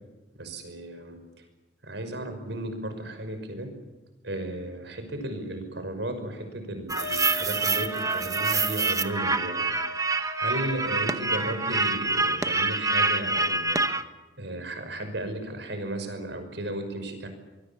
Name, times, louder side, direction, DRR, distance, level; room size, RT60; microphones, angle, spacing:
voice 1, 0.3-1.2 1.8-3.7 4.2-9.7 10.4-13.8 14.4-17.3, right 1 dB, 70° right, 7 dB, 5.8 m, -34 dB
sound 1, 6.9-14.0, right 3 dB, 20° right, 1.0 m, -26 dB
Wind instrument woodwind instrument, 7.0-11.3, left 1 dB, 90° left, 4.4 m, -40 dB
24.0 x 23.5 x 7.2 m, 1.1 s
head